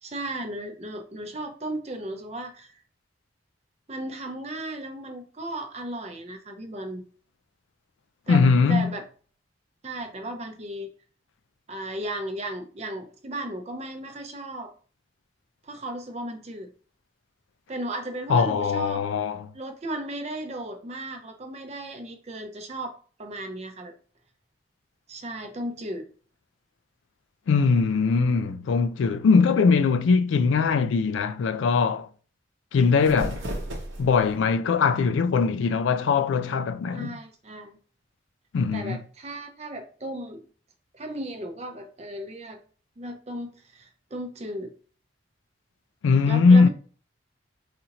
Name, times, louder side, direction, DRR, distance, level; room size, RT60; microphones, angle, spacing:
voice 1, 0.0-2.8 3.9-7.0 8.3-9.0 9.8-10.9 11.7-14.7 15.6-16.7 17.7-19.0 19.5-22.9 23.2-23.9 25.1-26.1 36.9-37.8 38.7-40.4 40.9-42.6 43.0-44.7 46.3-46.7, right 1 dB, 35° right, 0.6 m, -35 dB
voice 2, 8.3-8.9 18.3-19.5 27.5-32.1 32.7-33.4 34.0-37.2 38.5-39.0 46.0-46.7, left 5 dB, 85° left, 0.3 m, -21 dB
sound 1, 32.8-34.4, equal, 90° right, 0.8 m, -34 dB
4.2 x 2.5 x 2.8 m
head